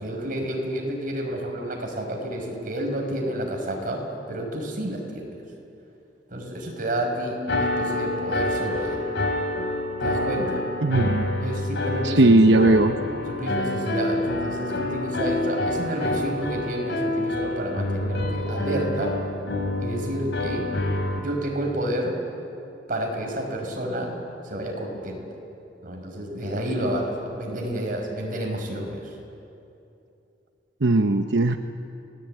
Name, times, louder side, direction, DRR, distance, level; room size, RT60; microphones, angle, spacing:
voice 1, 0.0-4.0 4.3-5.3 6.3-9.1 10.0-10.6 11.4-12.2 12.5-12.7 13.3-19.2 19.8-20.7 21.1-22.2 22.9-24.2 24.4-25.3 25.8-29.0, right 1 dB, 50° right, 2 dB, 5.6 m, -30 dB
sound 1, 7.5-21.2, left 1 dB, 85° left, 3.1 m, -27 dB
voice 2, 10.8-11.3 12.0-13.0 30.8-31.6, right 2 dB, 75° right, 7 dB, 0.9 m, -18 dB
30.0 x 20.0 x 9.1 m, 2.8 s
head